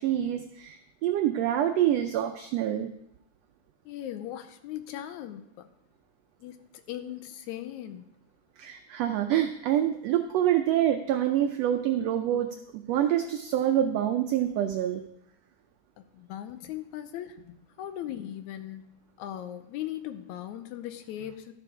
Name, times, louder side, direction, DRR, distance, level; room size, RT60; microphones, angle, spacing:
voice 1, 0.0-2.9 8.6-15.0, right 11 dB, 90° right, 6 dB, 1.4 m, -26 dB
voice 2, 3.9-5.7 6.4-6.6 6.9-8.0 16.1-21.5, left 12 dB, 80° left, 9 dB, 1.9 m, -39 dB
12.5 x 6.9 x 4.8 m, 0.79 s
omnidirectional pair, 3.6 m